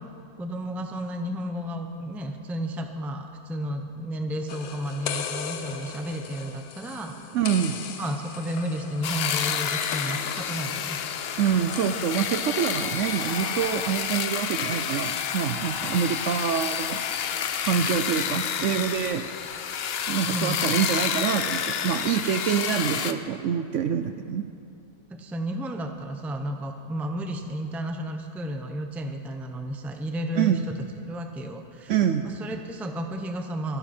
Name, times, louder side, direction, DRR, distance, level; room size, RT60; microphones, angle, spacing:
voice 1, 0.4-7.2 8.0-11.0 15.8-15.9 20.2-20.6 25.1-32.0 32.2-33.8, equal, ahead, 5 dB, 0.5 m, -32 dB
sound 1, 4.5-13.2, left 7 dB, 75° left, 1.3 m, -38 dB
voice 2, 7.3-7.8 11.4-17.0 17.6-19.2 20.1-24.4 30.4-30.6 31.9-32.3, right 8 dB, 65° right, 9 dB, 0.8 m, -26 dB
sound 2, 9.0-23.1, left 8 dB, 60° left, 0.7 m, -29 dB
24.0 x 11.0 x 4.3 m, 2.7 s
omnidirectional pair, 1.6 m